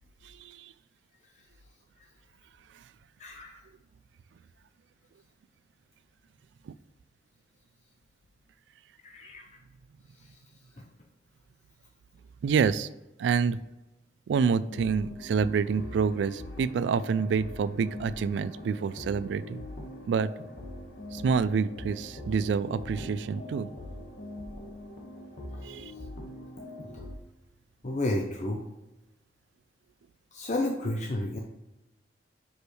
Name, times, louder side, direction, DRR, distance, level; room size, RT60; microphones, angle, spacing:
voice 1, 0.2-0.7 6.7-6.8 12.4-12.9 13.2-13.6 14.3-19.6 20.1-20.3 21.1-23.7 25.6-25.9, right 6 dB, 75° right, 16 dB, 0.3 m, -27 dB
voice 2, 3.2-3.5 9.0-9.4 27.8-28.6 30.3-31.4, left 1 dB, 40° left, 2 dB, 0.6 m, -31 dB
sound 1, 14.7-27.2, left 1 dB, 75° left, 1.4 m, -42 dB
6.3 x 5.2 x 3.2 m, 1.0 s
head